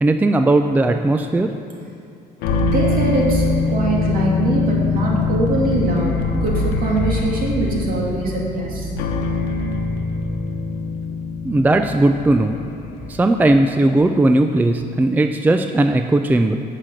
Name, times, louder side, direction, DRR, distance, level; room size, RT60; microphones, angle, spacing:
voice 1, 0.0-1.5 11.4-12.6 13.1-16.6, right 2 dB, 10° right, 7 dB, 0.4 m, -17 dB
sound 1, 2.4-13.8, left 3 dB, 90° left, 1.0 m, -23 dB
voice 2, 2.5-8.9, right 2 dB, 55° right, -3 dB, 2.7 m, -22 dB
9.7 x 5.9 x 7.7 m, 2.5 s
cardioid pair, 110°, 17 cm